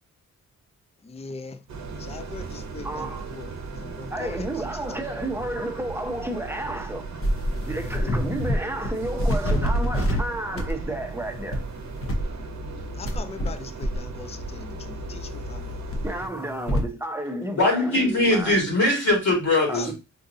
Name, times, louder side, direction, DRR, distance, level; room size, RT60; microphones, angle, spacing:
voice 1, 1.0-1.6 2.0-4.5 4.7-4.8 13.0-15.7 19.7-19.9, left 4 dB, 20° left, 0.4 m, -40 dB
sound 1, 1.7-16.3, right 4 dB, 55° right, 0.8 m, -37 dB
voice 2, 2.8-3.3 4.1-7.0 7.7-11.6 16.0-18.6 19.7-19.9, right 1 dB, 10° right, 0.7 m, -31 dB
sound 2, 7.2-8.6 8.8-10.2 10.6-10.8 11.3-11.6 12.0-13.5 13.8-16.9, equal, 45° left, 0.9 m, -28 dB
voice 3, 17.6-19.9, left 2 dB, 65° left, 1.7 m, -21 dB
3.9 x 2.5 x 2.6 m
cardioid pair, 75°, 32 cm